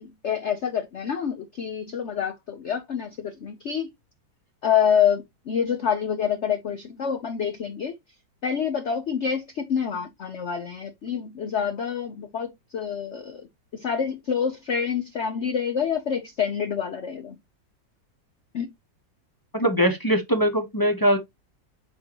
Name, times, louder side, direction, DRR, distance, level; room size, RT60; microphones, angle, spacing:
voice 1, 0.0-3.9 4.6-7.9 8.4-13.5 13.7-17.4 18.5-18.7, left 7 dB, 60° left, 0.8 m, -27 dB
voice 2, 19.5-21.2, equal, 20° left, 0.6 m, -21 dB
7.7 x 4.2 x 3.0 m
omnidirectional pair, 2.0 m